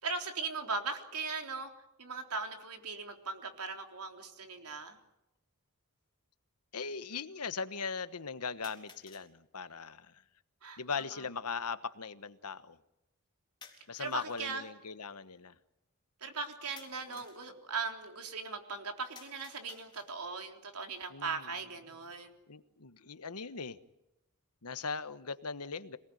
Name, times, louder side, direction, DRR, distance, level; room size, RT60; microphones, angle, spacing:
voice 1, 0.0-1.7 2.0-5.0 10.6-11.0 14.0-14.6 16.2-22.4, right 4 dB, 85° right, 4 dB, 3.7 m, -39 dB
sound 1, 5.3-5.4 8.6-9.3 13.6-14.5 16.8-17.5 19.1-20.3, left 5 dB, 20° left, 3.9 m, -56 dB
voice 2, 6.7-10.2 10.8-12.8 13.9-15.5 17.1-17.2 21.1-21.5 22.5-23.8 24.6-26.0, left 5 dB, 90° left, 12 dB, 1.3 m, -39 dB
26.5 x 19.0 x 9.3 m, 0.90 s
head